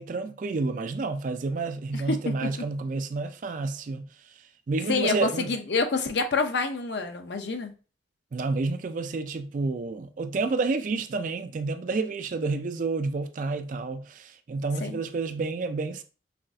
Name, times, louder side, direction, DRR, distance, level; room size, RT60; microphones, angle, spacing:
voice 1, 0.0-4.1 4.7-5.5 8.3-16.0, right 3 dB, 45° right, 0.3 m, -29 dB
voice 2, 1.9-2.7 4.9-7.7 14.8-15.0, left 3 dB, 65° left, 0.6 m, -27 dB
5.7 x 2.5 x 2.4 m
head